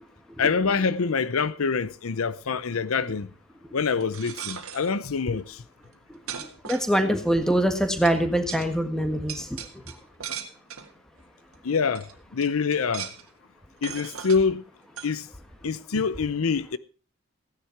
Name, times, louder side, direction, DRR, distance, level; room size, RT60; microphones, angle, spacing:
voice 1, 0.4-3.3 3.7-5.6 11.6-13.1 13.8-14.6 15.0-15.3 15.6-16.8, left 5 dB, 80° left, 0.6 m, -25 dB
sound 1, 4.0-4.9 5.8-5.9 6.3-7.3 8.0-8.2 8.5-8.7 9.3-10.9 11.5-11.6 11.9-12.1 12.4-13.3 13.8-14.4 15.0-15.1, right 8 dB, 85° right, 1.7 m, -38 dB
voice 2, 6.6-9.5 15.9-16.0, right 1 dB, 5° left, 1.6 m, -23 dB
15.5 x 10.0 x 4.5 m
head